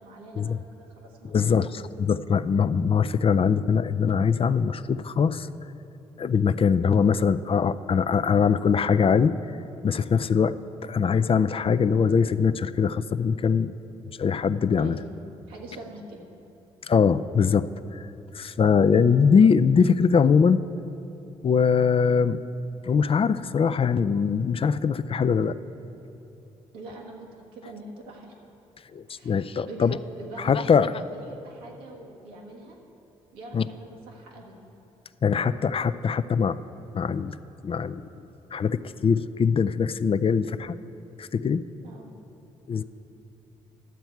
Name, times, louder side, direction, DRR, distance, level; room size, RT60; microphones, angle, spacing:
voice 1, 0.0-1.7 14.8-15.1 15.5-16.2 26.7-28.3 29.1-32.8 33.3-34.7 41.8-42.1, right 2 dB, 90° right, -2 dB, 1.5 m, -43 dB
voice 2, 1.2-1.7 2.0-5.5 6.2-9.3 9.8-13.7 14.2-15.0 16.9-17.7 17.9-18.1 18.3-20.6 21.4-22.4 22.8-25.6 28.9-30.0 30.4-30.9 33.5-33.6 35.2-36.6 36.9-37.4 37.6-38.0 38.5-40.8 41.2-41.6 42.7-42.8, left 6 dB, 40° left, 14 dB, 0.4 m, -22 dB
12.0 x 8.0 x 4.5 m, 2.9 s
hypercardioid pair, 50°, 15 cm